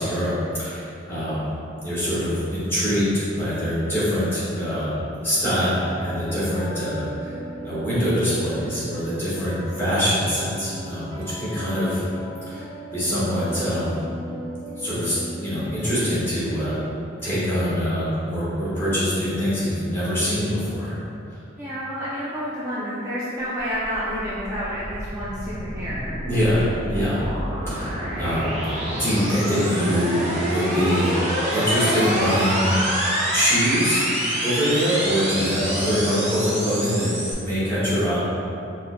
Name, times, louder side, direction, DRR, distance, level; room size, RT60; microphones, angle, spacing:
voice 1, 0.0-1.5 1.8-7.3 7.6-12.0 12.5-12.7 12.9-14.0 14.8-16.8 17.2-21.0 26.2-27.2 27.7-27.9 28.2-28.5 29.0-31.1 31.5-32.8 33.3-34.0 34.4-38.2, equal, 10° left, -12 dB, 1.3 m, -24 dB
sound 1, 5.7-16.7, equal, 85° right, 0.8 m, -37 dB
voice 2, 21.6-26.2, equal, 15° right, -11 dB, 0.4 m, -29 dB
sound 2, 23.6-37.3, right 1 dB, 35° right, 0.8 m, -27 dB
5.1 x 2.4 x 2.2 m, 2.6 s
head